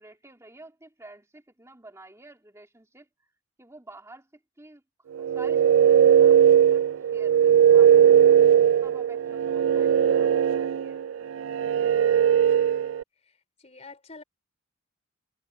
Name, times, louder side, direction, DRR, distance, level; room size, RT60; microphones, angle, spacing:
voice 1, 0.0-3.1 3.6-4.3 4.6-4.8 5.2-6.8 7.1-8.1 8.8-11.0, right 2 dB, 15° right, 2.5 m, -50 dB
sound 1, 5.1-13.0, right 9 dB, 70° right, 0.4 m, -19 dB
voice 2, 12.6-12.9 13.3-14.2, left 3 dB, 30° left, 3.8 m, -49 dB
head